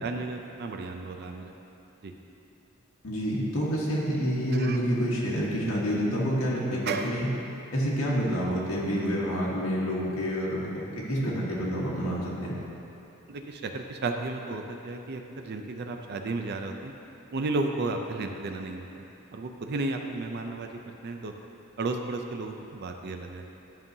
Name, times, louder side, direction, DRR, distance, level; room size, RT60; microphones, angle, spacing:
voice 1, 0.0-1.5 2.0-2.1 4.5-4.8 6.9-7.1 13.3-16.9 17.3-21.3 21.8-23.4, right 3 dB, 50° right, 4 dB, 0.4 m, -33 dB
voice 2, 3.0-7.3 7.7-12.6, equal, 85° left, -6 dB, 1.3 m, -28 dB
11.0 x 5.4 x 2.7 m, 2.9 s
head